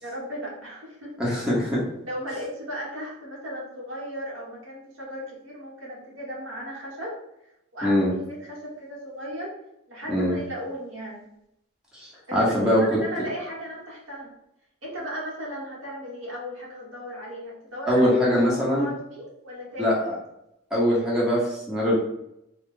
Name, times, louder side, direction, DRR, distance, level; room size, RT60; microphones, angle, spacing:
voice 1, 0.0-1.1 2.1-7.1 7.7-9.5 9.9-11.3 12.3-14.3 14.8-20.1, equal, 75° right, -4 dB, 1.4 m, -36 dB
voice 2, 1.2-1.8 7.8-8.1 10.1-10.4 11.9-12.8 17.9-18.9 19.8-20.1 20.7-21.9, equal, 5° right, -7 dB, 1.1 m, -22 dB
3.9 x 2.3 x 3.8 m, 0.82 s
head